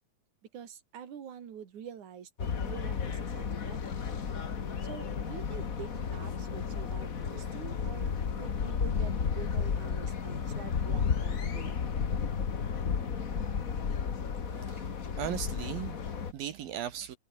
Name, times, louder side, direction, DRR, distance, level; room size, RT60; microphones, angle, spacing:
voice 1, 0.5-4.0 4.8-11.9, right 8 dB, 60° right, 4.1 m, -46 dB
sound 1, 2.4-16.3, left 6 dB, 55° left, 0.9 m, -33 dB
voice 2, 14.5-14.9 15.2-17.2, right 10 dB, 80° right, 3.5 m, -38 dB
omnidirectional pair, 4.1 m